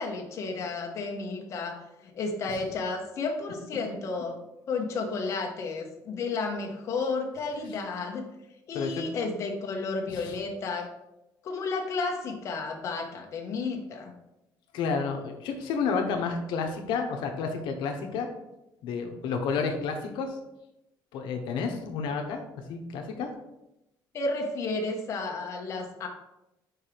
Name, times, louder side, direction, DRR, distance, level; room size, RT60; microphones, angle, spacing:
voice 1, 0.0-4.4 4.7-8.2 8.7-10.9 11.4-14.1 24.1-26.1, left 3 dB, 40° left, 2 dB, 0.9 m, -32 dB
voice 2, 14.7-18.3 18.8-20.4 21.1-22.4 22.7-23.3, left 5 dB, 85° left, 3 dB, 0.9 m, -30 dB
4.7 x 4.5 x 5.0 m, 0.91 s
cardioid pair, 180°, 8 cm